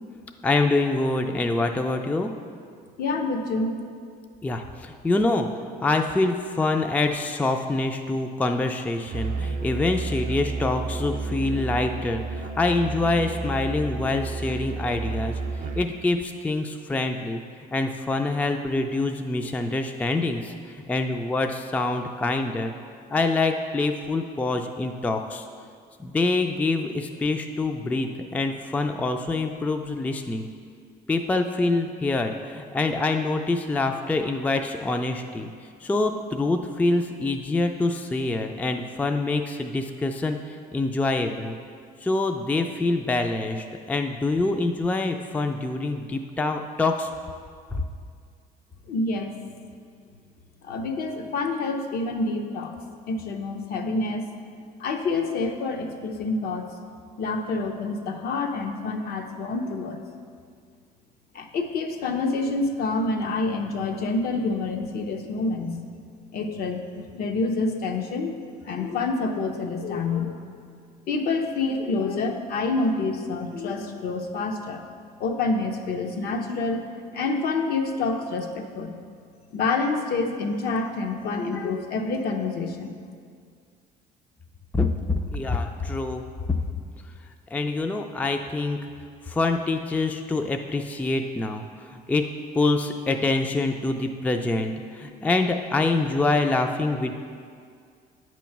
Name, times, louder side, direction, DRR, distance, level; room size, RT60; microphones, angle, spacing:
voice 1, 0.4-2.3 4.4-5.5 5.8-15.4 15.8-17.4 17.7-20.5 20.9-22.7 23.1-25.5 26.0-30.5 31.1-35.5 35.8-40.4 40.7-41.6 42.0-47.1 47.7-47.8 84.7-84.9 85.3-86.2 87.5-88.8 89.3-91.6 91.9-92.2 92.5-97.1, left 2 dB, 10° left, 5 dB, 0.3 m, -25 dB
voice 2, 3.0-3.7 48.9-49.3 50.6-52.7 53.1-54.2 54.8-56.6 57.2-60.0 61.3-65.8 66.3-68.3 68.6-70.3 71.1-74.8 75.2-76.8 77.1-79.0 79.5-82.9, left 3 dB, 65° left, 4 dB, 0.7 m, -27 dB
Musical instrument, 9.1-16.0, right 3 dB, 55° right, 0.5 m, -31 dB
8.6 x 3.1 x 5.8 m, 2.2 s
cardioid pair, 110°, 17 cm